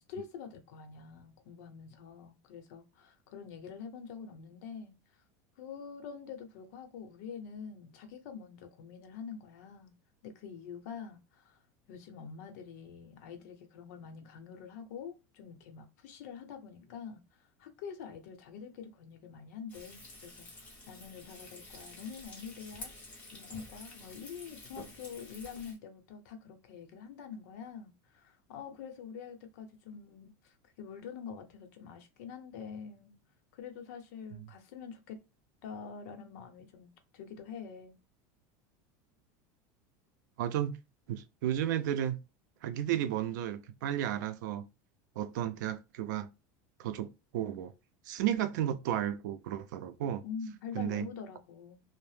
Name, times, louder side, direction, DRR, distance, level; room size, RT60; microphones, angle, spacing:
voice 1, 0.0-4.9 5.6-10.0 10.2-11.6 11.9-22.9 23.3-33.1 33.5-35.2 35.6-38.0 50.2-51.8, left 6 dB, 65° left, 0.7 m, -46 dB
Frying (food), 19.7-25.8, left 1 dB, 15° left, 0.8 m, -50 dB
voice 2, 40.4-40.8 41.1-42.2 42.6-44.7 45.2-46.3 46.8-47.7 48.1-50.2 50.8-51.1, right 11 dB, 90° right, 0.4 m, -33 dB
2.7 x 2.0 x 3.2 m
supercardioid pair, 175°, 10 cm